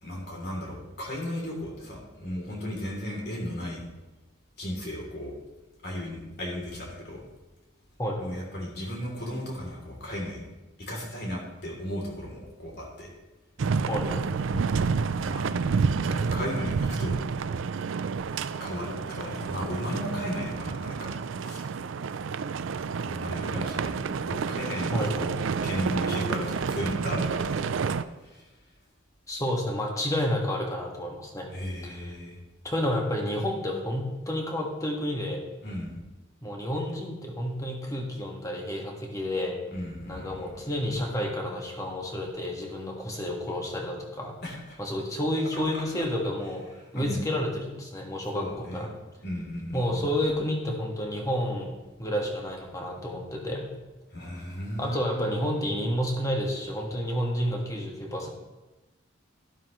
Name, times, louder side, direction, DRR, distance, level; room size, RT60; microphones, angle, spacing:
voice 1, 0.0-3.9 4.6-5.4 5.8-7.2 8.2-10.4 10.8-13.1 14.5-14.7 15.2-15.7 16.1-17.2 18.6-21.7 23.0-25.4 25.6-28.6 31.5-32.4 35.6-36.0 39.7-40.7 44.4-44.8 45.7-45.8 46.9-47.2 48.3-48.9 49.2-50.1 54.1-55.7, equal, 55° left, -1 dB, 3.1 m, -35 dB
voice 2, 8.0-8.3 13.9-14.3 24.9-25.3 29.3-31.5 31.8-32.0 32.6-35.4 36.4-39.6 40.1-44.3 44.8-46.6 46.9-48.9 49.7-51.7 52.0-53.7 54.8-58.3, equal, 15° left, 0 dB, 1.6 m, -30 dB
sound 1, 13.6-28.0, right 5 dB, 70° right, 0.4 m, -29 dB
12.0 x 11.5 x 3.1 m, 1.1 s
head